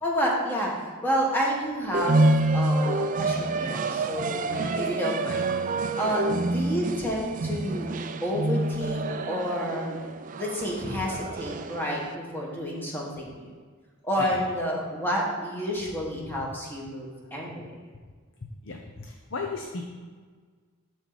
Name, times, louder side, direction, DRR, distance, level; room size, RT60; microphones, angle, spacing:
voice 1, 0.0-4.4 4.7-5.5 6.0-7.9 8.2-9.9 10.4-13.5 14.0-17.7, equal, 10° left, -3 dB, 1.6 m, -29 dB
sound 1, 1.9-12.1, right 2 dB, 40° right, 0.4 m, -27 dB
voice 2, 18.6-19.9, left 3 dB, 60° left, 2 dB, 0.7 m, -36 dB
12.5 x 4.5 x 4.1 m, 1.5 s
head